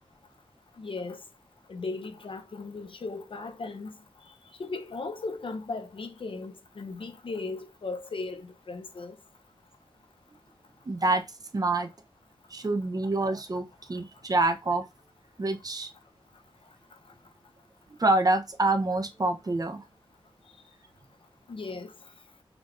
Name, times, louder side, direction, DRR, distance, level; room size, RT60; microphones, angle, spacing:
voice 1, 0.8-1.2 1.7-4.0 4.3-4.4 4.6-9.2 21.5-21.9, left 3 dB, 65° left, 0.8 m, -37 dB
voice 2, 10.9-11.2 11.5-11.9 12.5-14.8 15.4-15.9 18.0-19.8, right 2 dB, 40° right, 0.8 m, -26 dB
6.0 x 3.3 x 2.6 m
wide cardioid pair, 70°, 9 cm